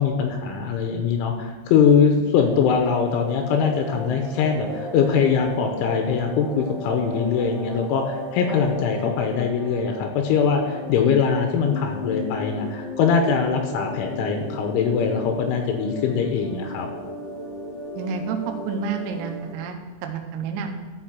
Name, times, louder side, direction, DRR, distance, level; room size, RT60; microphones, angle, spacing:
voice 1, 0.0-16.9, left 6 dB, 80° left, 4 dB, 3.1 m, -22 dB
sound 1, 2.5-19.5, left 1 dB, 50° left, 1.2 m, -35 dB
voice 2, 18.0-20.7, right 6 dB, 85° right, 4 dB, 3.6 m, -30 dB
12.5 x 5.6 x 6.0 m, 1.4 s
omnidirectional pair, 5.9 m